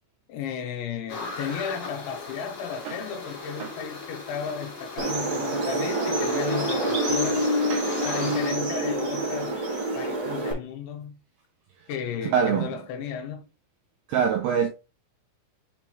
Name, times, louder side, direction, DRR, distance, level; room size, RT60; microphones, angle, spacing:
voice 1, 0.3-7.5 8.0-9.6 10.0-11.2 11.9-13.5, left 7 dB, 80° left, 3.2 m, -34 dB
sound 1, 1.1-8.5, left 4 dB, 35° left, 2.2 m, -36 dB
sound 2, 5.0-10.5, right 1 dB, 45° right, 1.4 m, -27 dB
voice 2, 12.2-12.7 14.1-14.7, right 7 dB, 80° right, 2.2 m, -25 dB
6.7 x 4.7 x 3.1 m
omnidirectional pair, 5.4 m